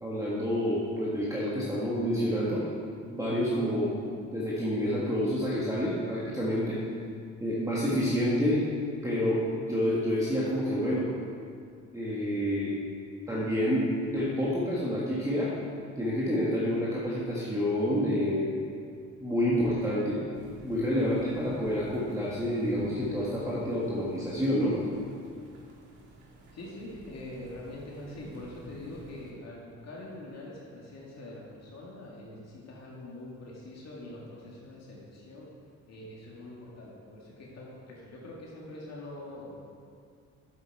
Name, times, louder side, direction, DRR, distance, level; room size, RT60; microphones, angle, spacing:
voice 1, 0.0-2.6 3.1-3.9 4.3-6.8 7.4-8.6 9.0-11.1 11.9-12.7 13.3-15.5 16.0-18.5 19.2-20.2 20.6-24.8, equal, 10° right, -7 dB, 1.6 m, -28 dB
sound 1, 20.3-29.3, right 1 dB, 70° right, 1.9 m, -50 dB
voice 2, 26.5-35.5 35.9-39.6, left 1 dB, 60° left, -4 dB, 2.0 m, -44 dB
8.1 x 8.0 x 4.6 m, 2.3 s
cardioid pair, 90°, 30 cm